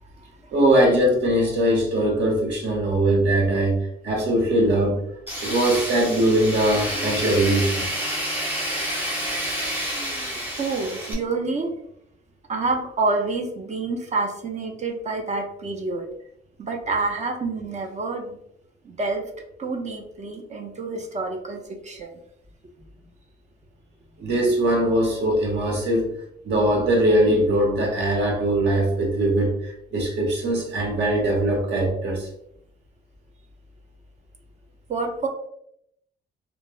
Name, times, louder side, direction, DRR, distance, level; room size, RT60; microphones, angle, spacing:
voice 1, 0.0-0.5 10.6-11.7 12.5-16.1 16.6-18.4 18.8-19.2 19.6-22.2 34.9-35.3, right 3 dB, 35° right, 2 dB, 0.5 m, -28 dB
voice 2, 0.5-5.0 5.4-7.9 24.2-26.1 26.4-32.3, right 1 dB, 60° right, 0 dB, 1.0 m, -21 dB
Tools, 5.3-11.1, equal, 10° right, 1.0 m, -29 dB
3.2 x 2.0 x 2.4 m, 0.74 s
cardioid pair, 90°, 20 cm